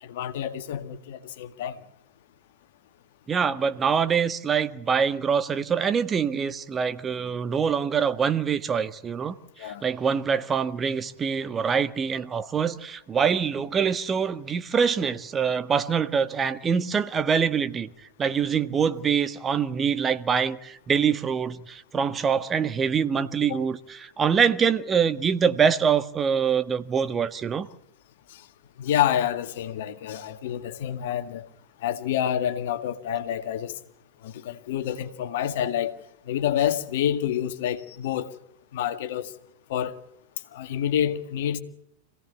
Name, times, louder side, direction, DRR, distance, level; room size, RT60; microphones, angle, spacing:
voice 1, 0.0-1.8 9.6-9.9 23.5-23.6 28.3-28.5 28.8-31.5 31.8-33.8 34.2-36.0 36.3-38.3 38.7-39.3 39.7-40.0 40.5-41.6, left 10 dB, 65° left, 2.0 m, -28 dB
voice 2, 3.3-17.9 18.2-27.7, right 6 dB, 25° right, 1.5 m, -24 dB
26.5 x 17.5 x 8.5 m
hypercardioid pair, 95°, 0 cm